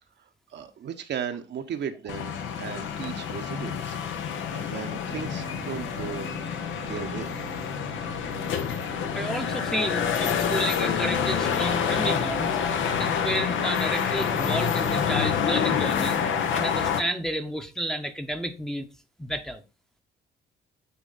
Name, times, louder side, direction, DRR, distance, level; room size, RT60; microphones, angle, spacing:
voice 1, 0.5-4.0 4.5-6.3 6.8-7.3, right 8 dB, 60° right, 0.9 m, -36 dB
sound 1, 2.1-17.0, left 7 dB, 75° left, 0.9 m, -27 dB
sound 2, 5.1-17.1, right 5 dB, 30° right, 0.6 m, -43 dB
voice 2, 9.1-12.6 13.0-16.2 16.5-18.9 19.2-19.6, right 1 dB, ahead, 0.8 m, -31 dB
9.5 x 3.2 x 4.0 m
cardioid pair, 90°, 20 cm